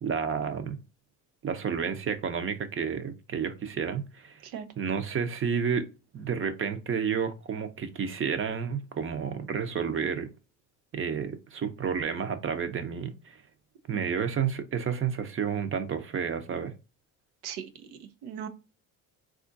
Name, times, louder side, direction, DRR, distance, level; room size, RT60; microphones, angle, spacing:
voice 1, 0.0-0.8 1.4-4.5 4.8-5.9 6.1-10.3 10.9-13.4 13.9-16.7, right 6 dB, 35° right, 0.6 m, -30 dB
voice 2, 17.4-18.5, right 8 dB, 85° right, 0.6 m, -39 dB
3.6 x 2.4 x 2.5 m
supercardioid pair, 80°, 37 cm